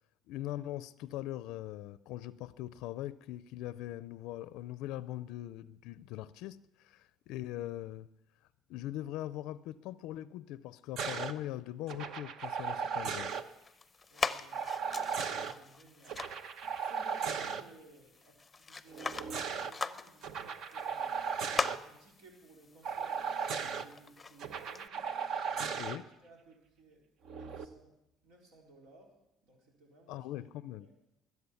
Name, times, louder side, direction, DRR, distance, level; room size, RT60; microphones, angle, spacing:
voice 1, 0.3-8.1 8.7-13.3 25.8-26.1 30.1-30.9, left 14 dB, 75° left, 0.4 m, -41 dB
sound 1, 11.0-11.3 11.9-13.4 14.5-15.5 16.1-17.6 18.9-19.7 20.2-21.8 22.8-23.8 24.4-26.0 27.3-27.6, right 6 dB, 55° right, 0.9 m, -36 dB
sound 2, 13.3-24.9, left 4 dB, 15° left, 0.7 m, -42 dB
voice 2, 14.1-16.2 16.7-21.2 21.8-25.1 25.4-27.0 27.3-27.9 28.2-29.1 29.4-30.4 30.8-30.9, right 2 dB, 80° right, 3.7 m, -60 dB
22.0 x 8.4 x 7.1 m
cardioid pair, 145°, 0 cm